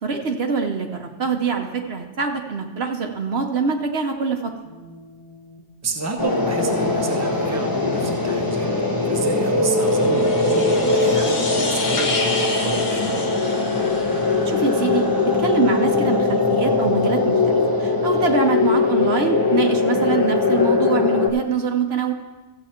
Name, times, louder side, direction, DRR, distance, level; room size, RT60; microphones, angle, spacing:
voice 1, 0.0-4.5 14.4-15.1 15.4-22.1, right 5 dB, 60° right, 3 dB, 1.1 m, -24 dB
sound 1, 4.6-10.2, right 1 dB, 80° right, 1.9 m, -39 dB
voice 2, 5.8-8.7 9.1-13.2, right 2 dB, 15° right, 2 dB, 1.0 m, -29 dB
sound 2, 6.2-21.3, left 3 dB, 20° left, 1.2 m, -20 dB
sound 3, 9.8-14.5, left 3 dB, 40° left, 1.1 m, -29 dB
14.5 x 7.8 x 4.4 m, 1.2 s
omnidirectional pair, 1.2 m